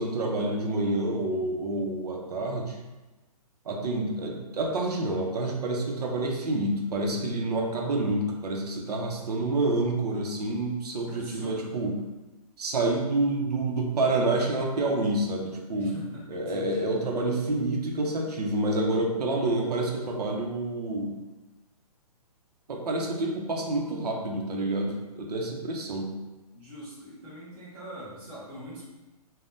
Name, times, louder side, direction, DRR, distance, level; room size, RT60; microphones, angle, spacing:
voice 1, 0.0-2.8 3.7-12.0 12.6-16.0 16.3-21.2 22.7-26.1, right 2 dB, 90° right, 1 dB, 0.6 m, -28 dB
voice 2, 11.1-11.7 15.7-16.9 26.5-28.8, equal, 10° right, -10 dB, 0.6 m, -43 dB
3.5 x 2.1 x 2.5 m, 1.1 s
hypercardioid pair, 170°, 20 cm